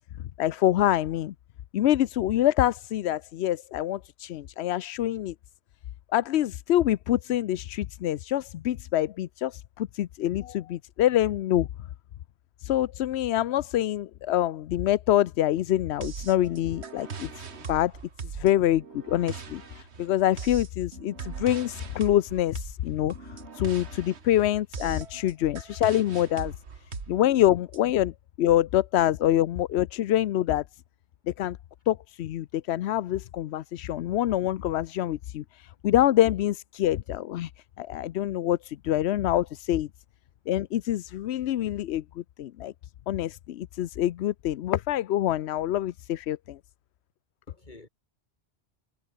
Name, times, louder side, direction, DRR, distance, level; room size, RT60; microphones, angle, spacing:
voice 1, 0.4-1.3 1.7-5.3 6.1-11.7 12.6-17.9 18.2-26.5 27.1-30.6 31.4-31.6 31.9-37.5 37.8-39.9 40.5-42.7 43.1-46.6, left 12 dB, 80° left, 0.9 m, -26 dB
sound 1, 16.0-27.8, right 5 dB, 85° right, 1.8 m, -40 dB
voice 2, 24.8-25.3 47.5-47.9, left 2 dB, 45° left, 3.3 m, -50 dB
omnidirectional pair, 1.1 m